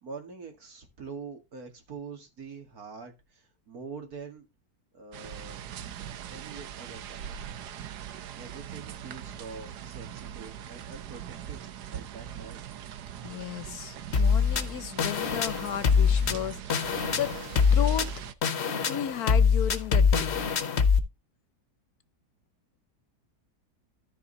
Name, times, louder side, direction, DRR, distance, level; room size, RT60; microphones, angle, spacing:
voice 1, 0.0-4.5 4.9-5.6 6.3-7.3 8.4-11.2 11.5-12.6, right 4 dB, 65° right, 2.6 m, -44 dB
sound 1, 5.1-18.3, right 9 dB, 80° right, 1.4 m, -41 dB
voice 2, 13.2-17.3 17.7-18.1 18.9-20.4, left 10 dB, 70° left, 1.2 m, -34 dB
sound 2, 14.1-21.0, left 6 dB, 45° left, 1.2 m, -24 dB
13.5 x 5.0 x 4.0 m
omnidirectional pair, 1.7 m